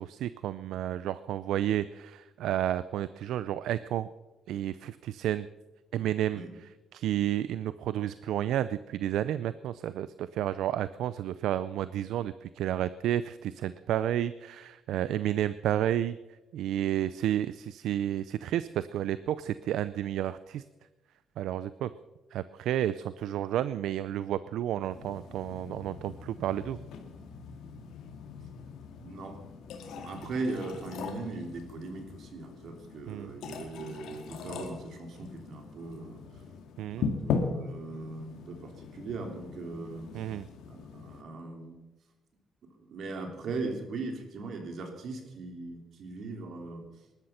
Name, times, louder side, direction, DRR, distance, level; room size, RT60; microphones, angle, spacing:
voice 1, 0.0-4.1 4.5-5.5 5.9-6.4 6.9-16.2 16.5-20.6 21.4-21.9 22.3-26.8 33.1-33.4 36.8-37.1 40.1-40.5, right 11 dB, 80° right, 15 dB, 0.5 m, -31 dB
sound 1, 24.9-41.2, left 5 dB, 80° left, 2.1 m, -40 dB
voice 2, 29.0-29.3 29.9-36.4 37.0-40.3 40.7-41.8 42.7-46.9, right 3 dB, 65° right, 4 dB, 3.5 m, -39 dB
20.0 x 12.0 x 5.8 m, 1.1 s
cardioid pair, 90°, 0 cm